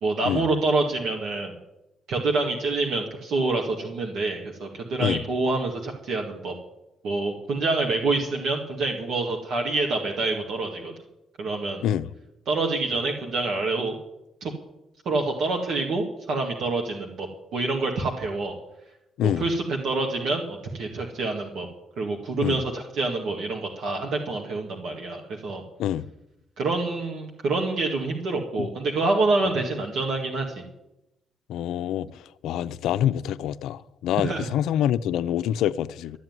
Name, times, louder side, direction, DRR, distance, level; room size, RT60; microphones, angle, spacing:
voice 1, 0.0-1.5 2.1-6.5 7.0-10.9 11.4-11.8 12.5-14.0 14.4-14.5 15.1-18.5 19.2-21.7 22.0-25.6 26.6-30.6 34.2-34.5, right 3 dB, 70° right, 1.8 m, -27 dB
voice 2, 31.5-32.1 32.4-36.2, left 11 dB, 85° left, 0.5 m, -26 dB
12.5 x 7.6 x 9.5 m
cardioid pair, 90°, 0 cm